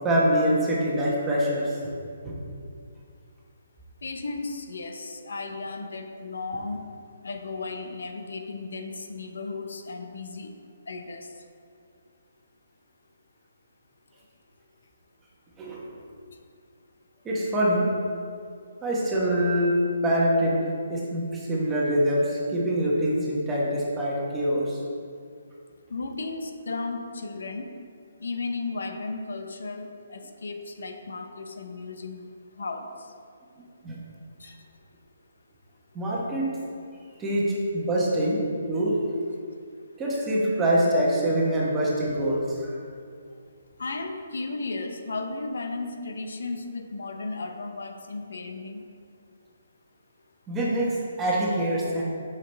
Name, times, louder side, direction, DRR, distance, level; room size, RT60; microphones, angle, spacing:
voice 1, 0.0-2.0 2.2-2.4 15.6-15.8 17.2-17.9 18.8-19.7 20.0-20.6 20.9-24.8 33.8-34.0 35.9-36.5 37.2-38.4 38.7-38.9 40.0-42.7 50.5-52.0, right 1 dB, 10° right, -5 dB, 1.1 m, -24 dB
voice 2, 4.0-6.9 7.2-10.5 10.9-11.3 25.9-27.7 28.2-32.3 32.6-32.9 34.4-34.6 43.8-48.8, left 3 dB, 80° left, 5 dB, 0.8 m, -35 dB
8.4 x 5.8 x 3.4 m, 2.3 s
hypercardioid pair, 165°, 0 cm